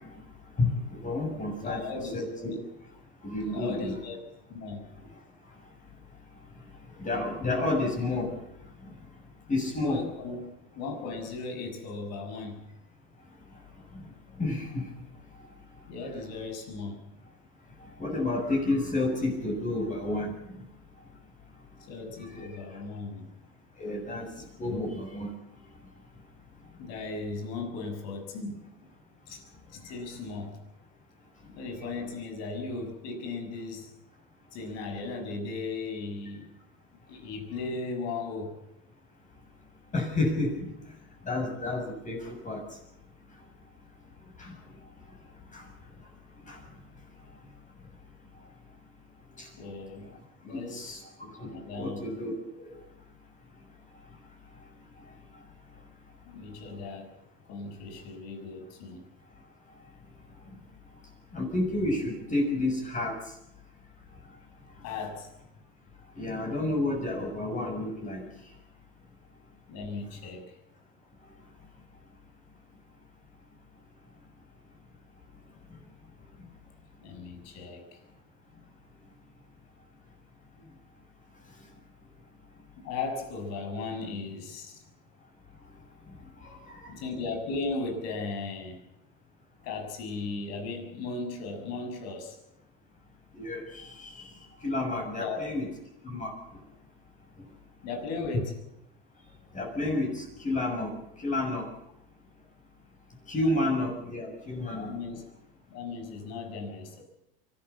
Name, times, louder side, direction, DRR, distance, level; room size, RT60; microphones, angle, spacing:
voice 1, 1.0-1.8 2.1-2.5 3.2-4.0 7.0-8.3 9.5-10.0 14.4-14.8 18.0-20.3 23.8-24.3 24.6-25.3 39.9-40.7 41.2-42.2 42.4-42.6 50.5-51.0 51.4-51.5 51.8-52.7 61.3-63.1 66.2-68.2 93.4-93.9 94.2-94.3 94.6-95.7 96.0-96.3 98.3-98.4 99.5-100.9 101.2-101.6 103.3-104.9, left 2 dB, 25° left, 1 dB, 6.9 m, -30 dB
voice 2, 1.6-2.6 3.4-4.2 4.5-4.9 9.8-10.4 10.7-12.7 15.9-17.0 21.9-23.3 24.7-24.8 26.8-28.9 29.3-29.4 29.7-30.6 31.5-33.9 34.5-36.5 37.1-38.5 49.6-50.1 50.4-52.0 56.2-57.1 57.5-59.1 64.8-65.3 69.7-70.6 77.0-78.0 82.8-84.8 86.9-88.8 89.6-92.4 95.1-95.4 97.8-98.5 104.8-105.2 105.7-107.0, left 3 dB, 60° left, 5 dB, 6.7 m, -37 dB
24.0 x 14.0 x 8.5 m, 0.84 s
supercardioid pair, 105°, 30 cm